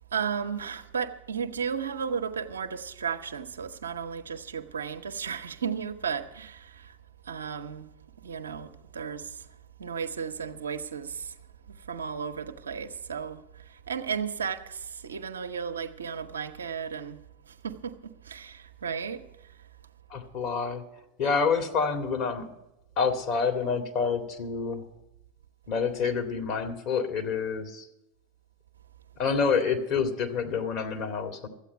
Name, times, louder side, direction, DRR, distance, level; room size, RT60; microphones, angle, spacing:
voice 1, 0.1-7.0 7.3-7.9 8.2-9.4 9.8-11.3 11.9-13.4 13.7-17.2 17.5-19.2, right 6 dB, 90° right, 0.8 m, -34 dB
voice 2, 20.1-20.8 21.2-22.4 23.0-24.9 25.7-27.9 29.2-31.5, left 5 dB, 50° left, 2.1 m, -28 dB
13.0 x 8.4 x 8.0 m
hypercardioid pair, 100°, 0 cm